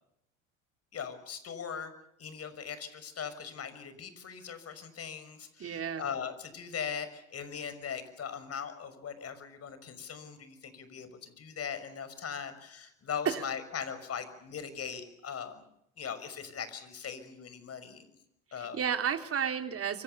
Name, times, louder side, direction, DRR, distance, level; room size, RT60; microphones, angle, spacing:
voice 1, 0.9-1.9 2.2-15.6 16.0-18.1 18.5-18.8, left 7 dB, 35° left, 12 dB, 6.1 m, -40 dB
voice 2, 5.6-6.0 13.2-13.4 18.6-20.0, right 7 dB, 35° right, 7 dB, 3.3 m, -32 dB
27.5 x 24.5 x 7.0 m, 0.78 s
hypercardioid pair, 75°, 40 cm